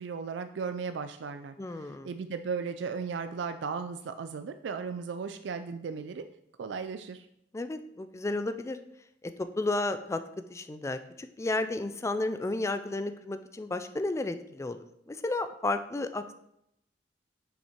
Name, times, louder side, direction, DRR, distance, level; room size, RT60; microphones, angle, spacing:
voice 1, 0.0-6.2 6.6-7.3, right 5 dB, 75° right, 9 dB, 0.4 m, -36 dB
voice 2, 1.6-2.1 7.5-8.8 9.2-10.2 10.5-14.8 15.1-16.3, left 2 dB, 15° left, 9 dB, 0.3 m, -32 dB
6.4 x 5.5 x 4.4 m, 0.78 s
head